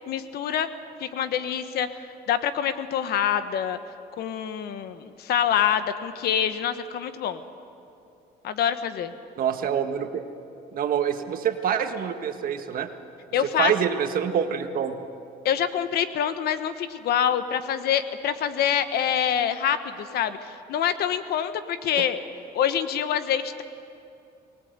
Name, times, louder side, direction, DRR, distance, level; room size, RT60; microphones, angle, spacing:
voice 1, 0.1-0.7 1.0-1.9 2.3-3.8 4.2-7.4 8.4-9.1 13.3-13.7 15.4-22.2 22.5-23.6, left 9 dB, 70° left, 11 dB, 1.2 m, -26 dB
voice 2, 9.4-10.3 10.7-12.9 13.6-15.0, right 8 dB, 60° right, 7 dB, 1.6 m, -26 dB
23.5 x 18.0 x 8.1 m, 2.6 s
cardioid pair, 110°, 17 cm